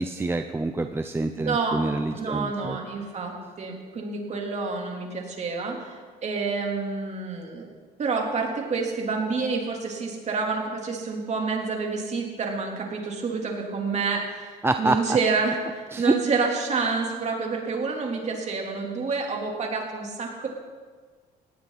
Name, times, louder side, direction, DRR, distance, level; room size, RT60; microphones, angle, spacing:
voice 1, 0.0-2.8 14.6-15.0 15.9-16.1, right 2 dB, 15° right, 7 dB, 0.7 m, -26 dB
voice 2, 1.4-1.8 2.1-7.7 8.0-20.5, right 4 dB, 40° right, 0 dB, 3.6 m, -28 dB
19.5 x 17.0 x 4.3 m, 1.5 s
cardioid pair, 110°, 17 cm